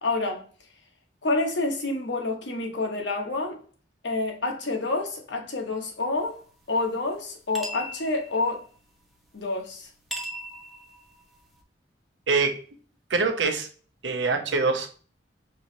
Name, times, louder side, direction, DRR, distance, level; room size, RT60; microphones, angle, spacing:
voice 1, 0.0-0.4 1.2-3.6 4.0-6.4 6.7-8.6 9.3-9.9, left 2 dB, 80° left, 1.1 m, -28 dB
sound 1, 6.2-11.6, equal, ahead, 0.7 m, -42 dB
voice 2, 12.3-12.6 13.1-13.7 14.0-14.9, right 4 dB, 85° right, 0.8 m, -24 dB
4.7 x 3.0 x 2.7 m
head